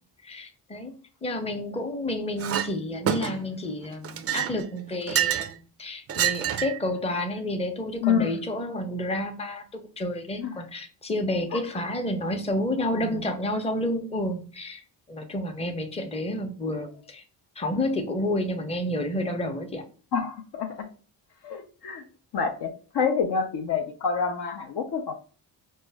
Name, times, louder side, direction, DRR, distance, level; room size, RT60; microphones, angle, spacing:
voice 1, 0.2-0.9 1.2-14.8 15.1-17.2 17.6-19.9, left 1 dB, 10° left, 5 dB, 0.7 m, -30 dB
Chink clink, 2.4-2.7 3.1-3.6 4.0-5.5 6.1-6.8, right 10 dB, 30° right, 0.4 m, -27 dB
voice 2, 8.0-8.4 10.4-10.5 11.5-11.6 12.9-13.0 20.1-20.9 21.4-22.0 22.3-25.1, left 6 dB, 55° left, 5 dB, 0.7 m, -27 dB
4.4 x 2.1 x 3.4 m, 0.39 s
hypercardioid pair, 45°, 50 cm